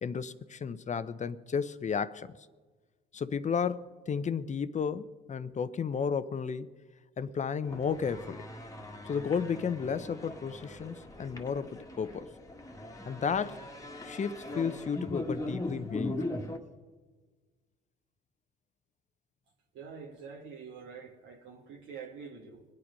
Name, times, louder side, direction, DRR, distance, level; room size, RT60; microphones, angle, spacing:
voice 1, 0.0-2.3 3.1-6.7 7.2-8.4 9.1-12.3 13.1-13.6 14.0-16.4, left 6 dB, 35° left, 0.8 m, -33 dB
sound 1, 7.6-16.6, left 1 dB, 15° left, 1.7 m, -40 dB
voice 2, 19.7-22.7, right 6 dB, 65° right, 1.9 m, -46 dB
23.5 x 8.6 x 5.3 m
hypercardioid pair, 60°, 21 cm